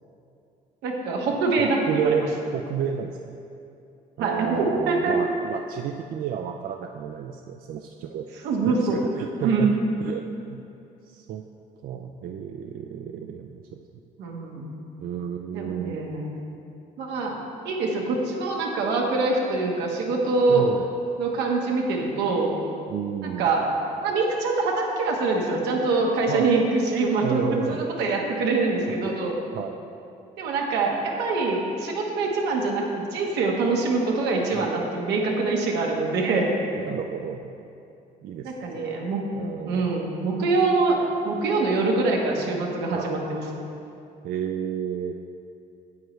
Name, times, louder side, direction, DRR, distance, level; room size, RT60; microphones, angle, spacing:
voice 1, 0.8-2.2 4.2-5.1 8.4-9.0 9.4-9.7 14.2-14.6 15.5-16.3 17.0-17.4 17.6-20.7 21.2-22.5 23.2-23.6 24.0-29.4 30.4-36.5 38.4-39.2 39.6-41.0 41.2-43.4, right 3 dB, 85° right, 0 dB, 1.3 m, -24 dB
voice 2, 1.6-2.2 2.5-3.4 4.2-9.7 10.0-10.6 11.0-11.4 11.8-13.8 15.0-16.0 20.5-20.9 22.9-23.5 26.3-26.5 27.2-28.0 28.9-29.1 29.5-29.8 34.5-34.7 36.7-37.5 38.2-39.0 39.3-39.9 42.9-43.1 44.2-45.1, right 8 dB, 60° right, 4 dB, 0.4 m, -31 dB
9.4 x 7.7 x 3.1 m, 2.7 s
cardioid pair, 110°, 17 cm